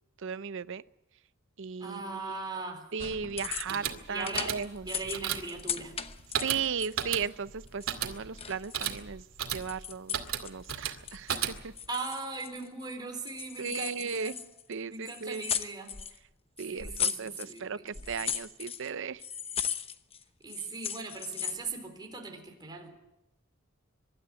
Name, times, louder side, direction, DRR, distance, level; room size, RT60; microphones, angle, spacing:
voice 1, 0.2-0.8 1.6-2.4 2.9-4.9 6.4-9.2 9.5-11.7 13.6-14.3 14.7-15.4 16.6-19.2, right 6 dB, 60° right, 15 dB, 0.7 m, -36 dB
voice 2, 1.8-2.9 3.7-6.0 11.9-14.4 14.9-16.0 16.7-18.2 20.4-22.9, right 3 dB, 20° right, 2 dB, 3.9 m, -39 dB
sound 1, 3.0-3.9 4.2-7.1 7.7-9.0 9.4-10.7 11.1-11.5 11.8-12.8 13.2-14.7 15.0-16.2 16.6-17.6 17.9-18.9 19.2-20.2 20.5-21.7, left 7 dB, 25° left, 0.9 m, -37 dB
sound 2, 3.5-11.9, right 9 dB, 90° right, 2.2 m, -36 dB
24.0 x 12.5 x 9.3 m, 0.91 s
head